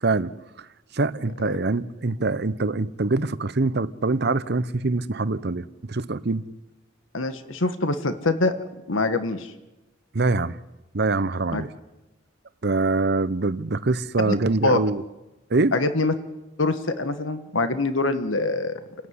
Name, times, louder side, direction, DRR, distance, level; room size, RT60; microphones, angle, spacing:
voice 1, 0.0-0.7 0.9-6.5 10.1-10.6 10.9-11.7 12.6-15.0 15.5-15.8, right 3 dB, 55° right, 0.9 m, -24 dB
voice 2, 7.1-8.5 8.9-9.5 11.5-11.6 14.3-14.4 14.6-14.8 15.7-16.1 16.6-18.8, left 3 dB, 90° left, 1.5 m, -24 dB
29.0 x 14.0 x 9.7 m
head